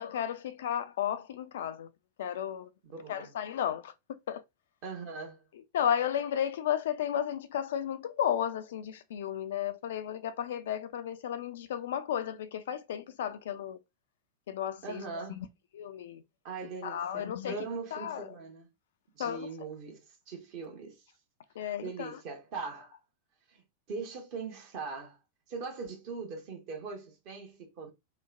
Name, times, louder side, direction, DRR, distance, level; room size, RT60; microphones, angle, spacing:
voice 1, 0.0-1.9 2.2-2.7 3.1-4.4 5.7-13.8 14.5-15.0 15.3-15.5 15.7-16.2 16.8-17.6 17.9-18.2 19.2-19.5 21.6-22.2, left 9 dB, 60° left, 0.3 m, -33 dB
voice 2, 2.8-3.3 4.8-5.5 14.8-15.5 16.4-18.7 19.1-21.0 21.8-23.0 23.5-25.2 25.5-27.9, right 4 dB, 45° right, 0.9 m, -41 dB
2.9 x 2.1 x 2.4 m
figure-of-eight pair, 90°, 0 cm